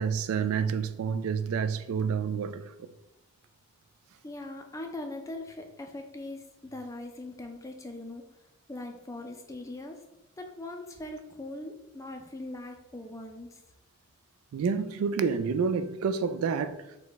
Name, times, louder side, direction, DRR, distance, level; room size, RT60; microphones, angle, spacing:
voice 1, 0.0-2.7 14.5-16.8, right 6 dB, 75° right, 0.3 m, -29 dB
voice 2, 4.2-8.2 8.7-10.0 10.4-13.6, left 2 dB, 15° left, 0.4 m, -41 dB
5.1 x 2.2 x 3.9 m
head